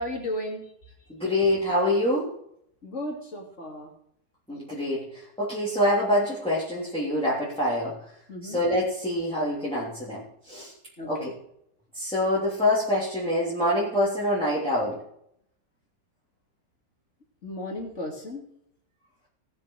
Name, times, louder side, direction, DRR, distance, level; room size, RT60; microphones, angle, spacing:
voice 1, 0.0-0.9 2.8-3.9 8.3-8.6 11.0-11.3 17.4-18.5, left 1 dB, 40° left, 0 dB, 3.0 m, -35 dB
voice 2, 1.1-2.3 4.5-7.9 8.4-10.7 11.1-11.3 11.9-15.0, left 1 dB, 5° left, -7 dB, 3.1 m, -25 dB
19.0 x 7.2 x 4.8 m, 0.72 s
omnidirectional pair, 1.9 m